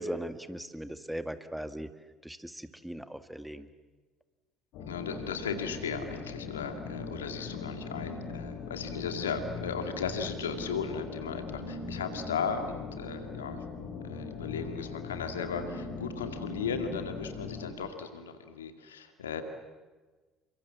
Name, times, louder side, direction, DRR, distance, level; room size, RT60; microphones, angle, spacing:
voice 1, 0.0-1.9 2.2-3.7, right 1 dB, 5° right, 10 dB, 2.0 m, -38 dB
sound 1, 4.7-17.7, left 4 dB, 65° left, 4.1 m, -40 dB
voice 2, 4.9-13.6 14.0-19.4, left 6 dB, 85° left, 7 dB, 2.2 m, -36 dB
29.5 x 25.5 x 7.5 m, 1.3 s
hypercardioid pair, 55°, 0 cm